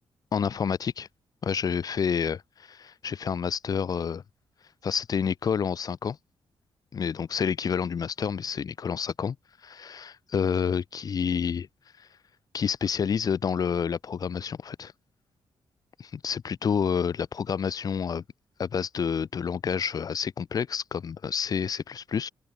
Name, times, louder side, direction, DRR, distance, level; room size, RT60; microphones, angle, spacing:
voice 1, 0.3-1.1 1.4-4.2 4.8-6.2 6.9-9.3 9.6-11.7 12.5-14.9 16.0-18.2 18.6-22.3, left 7 dB, 40° left, 1.6 m, -29 dB
open air
wide cardioid pair, 170°, 9 cm